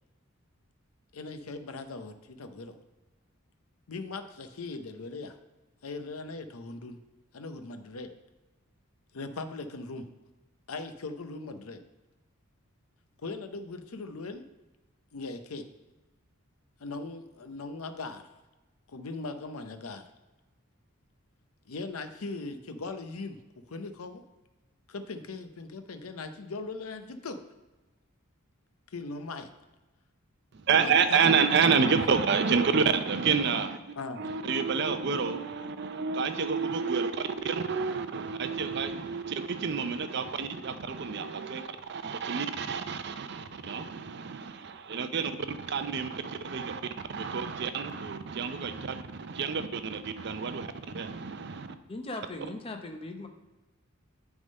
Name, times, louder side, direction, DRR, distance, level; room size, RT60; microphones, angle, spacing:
voice 1, 1.1-2.8 3.9-5.3 5.8-7.0 7.3-8.1 9.1-10.1 10.7-11.8 13.2-14.4 15.1-15.6 16.8-18.3 18.9-20.0 21.7-23.4 23.7-24.2 24.9-27.4 28.9-29.5 30.7-31.7 34.0-34.3, left 3 dB, 90° left, 8 dB, 0.7 m, -39 dB
voice 2, 30.5-33.8 34.2-46.8 47.1-51.7, right 5 dB, 50° right, 10 dB, 0.5 m, -29 dB
voice 3, 51.9-53.3, left 2 dB, 25° left, 5 dB, 0.6 m, -38 dB
9.7 x 3.6 x 5.3 m, 1.1 s
head